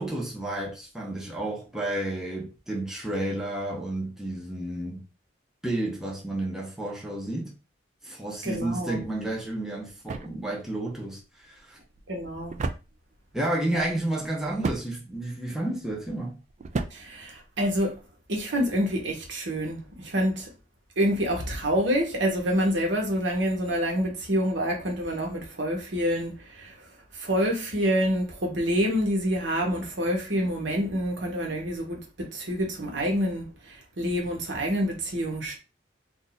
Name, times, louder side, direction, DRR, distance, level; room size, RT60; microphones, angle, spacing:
voice 1, 0.0-5.0 5.6-7.6 8.0-11.8 13.3-16.4, right 1 dB, 5° right, 0.7 m, -31 dB
voice 2, 8.4-9.0 12.1-12.6 13.7-13.9 16.9-18.0 18.3-20.5 21.0-26.8 27.1-35.6, equal, 70° right, 1.2 m, -27 dB
sound 1, 9.2-18.1, right 3 dB, 40° right, 0.4 m, -38 dB
2.7 x 2.5 x 3.9 m
head